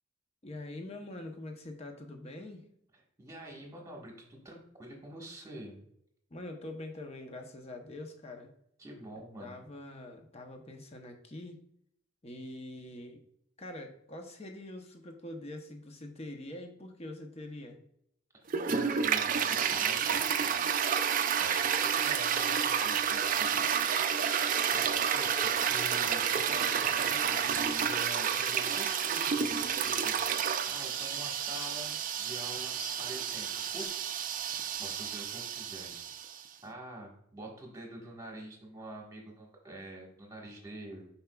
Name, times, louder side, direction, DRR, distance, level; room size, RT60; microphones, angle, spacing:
voice 1, 0.4-2.7 6.3-8.5 9.4-11.6 12.2-13.2 13.6-17.8, left 1 dB, 30° left, 4 dB, 0.8 m, -44 dB
voice 2, 3.2-5.8 8.8-9.6 18.4-20.6 21.4-23.7 24.2-31.9 32.2-34.1 34.8-35.9 36.6-41.1, right 1 dB, 15° right, -1 dB, 1.4 m, -46 dB
Toilet flush, 18.5-36.4, right 7 dB, 40° right, 0.4 m, -30 dB
Bird vocalization bird call bird song, 25.0-33.8, left 2 dB, 55° left, 2.2 m, -50 dB
7.2 x 5.6 x 2.3 m, 0.72 s
head